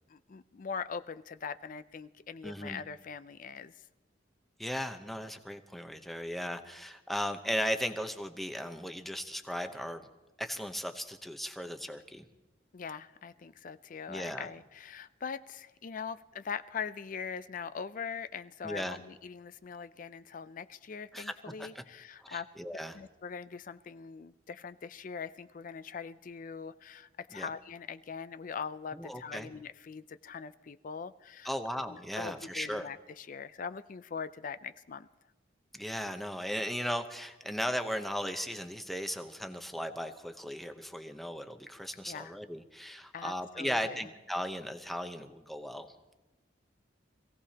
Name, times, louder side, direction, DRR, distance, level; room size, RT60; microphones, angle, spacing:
voice 1, 0.1-3.7 12.7-22.5 22.9-31.5 31.9-35.1 42.0-42.3 43.1-44.0, left 6 dB, 45° left, 13 dB, 0.4 m, -42 dB
voice 2, 2.4-2.8 4.6-10.1 10.4-12.2 14.1-14.5 18.6-19.0 21.1-21.3 21.6-21.8 22.2-23.0 27.3-27.5 28.9-29.5 31.4-32.9 35.7-45.9, equal, ahead, 6 dB, 0.8 m, -37 dB
25.5 x 16.5 x 2.9 m, 1.1 s
head